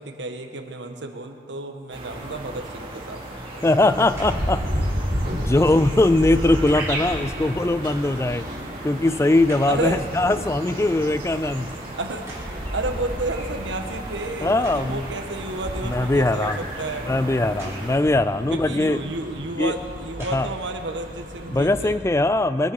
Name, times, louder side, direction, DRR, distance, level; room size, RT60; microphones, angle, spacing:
voice 1, 0.0-3.2 9.7-10.0 12.0-17.1 18.5-22.0, right 2 dB, 90° right, 5 dB, 1.3 m, -31 dB
sound 1, 1.9-18.0, right 1 dB, 30° right, 2.4 m, -38 dB
voice 2, 3.6-4.6 5.2-8.4 8.8-11.7 14.4-15.0 15.8-16.7 17.1-19.0 19.6-19.7 20.3-20.5 21.5-22.7, left 2 dB, 15° left, 14 dB, 0.3 m, -21 dB
sound 2, 3.9-22.0, equal, 45° right, 2.1 m, -32 dB
sound 3, 4.1-4.5 6.5-7.0 8.4-9.9 10.3-12.8 13.5-13.6 14.4-15.1 17.4-18.0 19.0-19.2 19.9-20.7 21.3-21.4, right 1 dB, 15° right, 3.9 m, -44 dB
22.0 x 10.5 x 5.5 m, 2.4 s
head